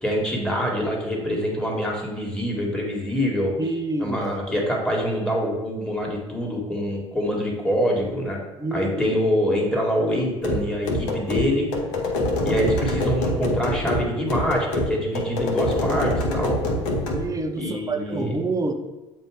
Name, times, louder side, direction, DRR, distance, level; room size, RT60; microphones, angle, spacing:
voice 1, 0.0-3.5 4.0-8.4 8.7-11.7 12.4-16.6 17.6-18.4, equal, 5° left, -2 dB, 1.6 m, -25 dB
voice 2, 3.6-4.2 8.6-9.2 17.1-18.7, right 2 dB, 20° right, 5 dB, 0.7 m, -27 dB
sound 1, 10.4-17.3, left 1 dB, 70° left, 0.9 m, -25 dB
7.5 x 2.6 x 4.9 m, 1.1 s
hypercardioid pair, 65°, 16 cm